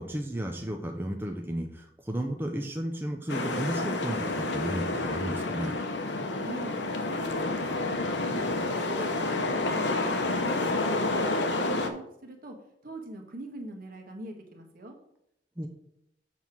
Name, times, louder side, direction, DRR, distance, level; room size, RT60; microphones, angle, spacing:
voice 1, 0.0-5.8 15.6-15.7, right 1 dB, 15° right, 2 dB, 0.6 m, -33 dB
sound 1, 3.3-11.9, left 2 dB, 85° left, 0.9 m, -29 dB
voice 2, 6.4-8.5 8.8-12.6 12.8-15.0, right 1 dB, 55° right, 2 dB, 1.5 m, -42 dB
7.3 x 4.3 x 6.1 m, 0.75 s
head